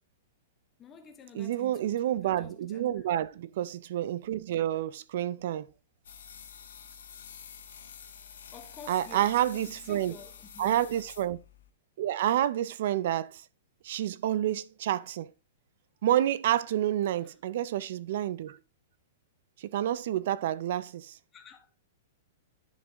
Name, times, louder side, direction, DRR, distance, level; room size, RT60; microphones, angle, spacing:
voice 1, 0.8-3.1 8.5-10.8 17.2-17.4 21.3-21.7, left 5 dB, 15° left, 1.0 m, -51 dB
voice 2, 1.4-5.7 8.9-10.1 10.6-11.4 12.0-13.4 13.8-15.3 16.0-18.6 19.6-21.2, right 12 dB, 55° right, 0.4 m, -29 dB
sound 1, 6.0-11.7, left 7 dB, 85° left, 1.0 m, -48 dB
10.5 x 4.0 x 3.5 m
hypercardioid pair, 160°, 0 cm